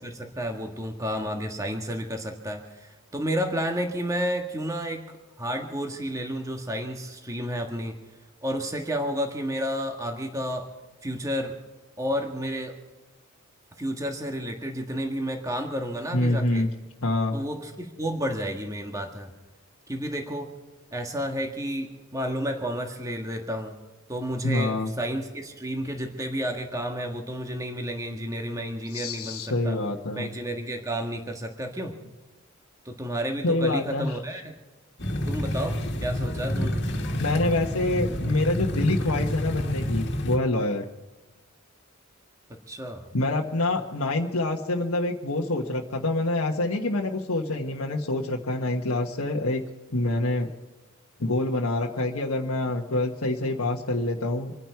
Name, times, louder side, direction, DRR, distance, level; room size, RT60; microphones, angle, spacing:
voice 1, 0.0-5.0 5.4-7.9 8.4-10.7 11.0-11.6 12.0-12.7 13.8-16.6 17.3-19.3 19.9-20.5 20.9-23.7 24.1-29.8 30.1-31.9 32.8-34.5 35.2-36.8 42.7-43.1, equal, 15° right, 2 dB, 1.6 m, -31 dB
voice 2, 16.1-16.7 17.0-17.4 24.4-24.9 28.9-30.3 33.4-34.2 37.1-40.9 43.1-49.6 49.9-50.5 51.2-54.6, left 2 dB, 75° left, -1 dB, 1.4 m, -26 dB
sound 1, 35.0-40.4, equal, 50° left, 2.1 m, -28 dB
26.5 x 10.5 x 4.6 m, 1.2 s
head